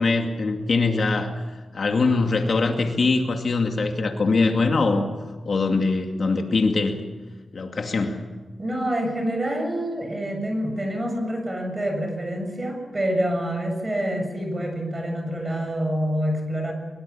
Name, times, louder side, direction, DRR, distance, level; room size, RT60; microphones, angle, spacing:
voice 1, 0.0-1.4 1.7-5.1 5.5-7.0 7.5-8.2, left 3 dB, 50° left, 4 dB, 2.3 m, -22 dB
voice 2, 8.6-16.7, equal, 25° right, 4 dB, 7.7 m, -27 dB
23.5 x 23.0 x 7.2 m, 1.3 s
wide cardioid pair, 120°, 0 cm